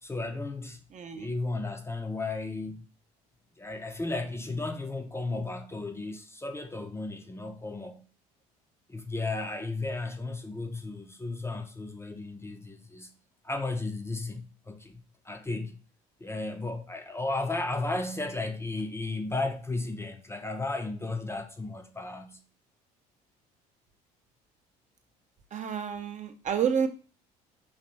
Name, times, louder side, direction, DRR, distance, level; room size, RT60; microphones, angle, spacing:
voice 1, 0.0-0.8 1.1-2.8 3.6-8.0 8.9-13.1 13.4-15.8 16.2-22.4, left 2 dB, 15° left, 0.5 m, -34 dB
voice 2, 0.9-1.3 25.5-26.9, right 7 dB, 40° right, 0.5 m, -29 dB
4.1 x 2.6 x 3.0 m
hypercardioid pair, 70°, 19 cm